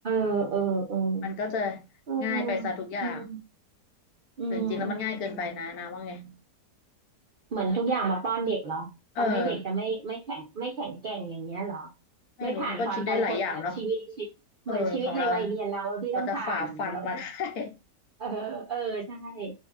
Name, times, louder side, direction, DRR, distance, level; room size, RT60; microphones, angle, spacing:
voice 1, 0.0-1.3 2.1-2.7 3.0-3.4 4.4-5.4 7.5-8.9 9.2-11.9 12.4-13.4 13.8-14.3 14.7-17.1 18.2-19.5, right 4 dB, 75° right, 0.4 m, -31 dB
voice 2, 1.2-1.8 2.2-3.2 4.5-6.3 9.2-9.6 12.4-13.8 14.7-15.5 16.1-17.8, left 4 dB, 70° left, 1.0 m, -31 dB
3.0 x 2.7 x 2.2 m
omnidirectional pair, 1.8 m